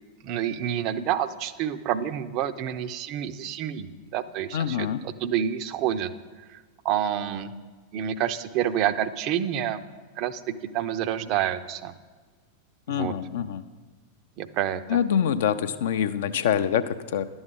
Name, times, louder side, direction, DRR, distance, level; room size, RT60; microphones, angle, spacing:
voice 1, 0.2-6.1 6.5-7.5 7.9-9.8 10.2-10.4 10.7-11.9 12.9-13.1 14.4-15.0, right 10 dB, 40° right, 12 dB, 0.5 m, -28 dB
voice 2, 4.5-5.0 12.9-13.6 14.9-17.2, left 8 dB, 60° left, 11 dB, 0.4 m, -25 dB
11.0 x 7.1 x 5.3 m, 1.4 s
figure-of-eight pair, 90°, 0 cm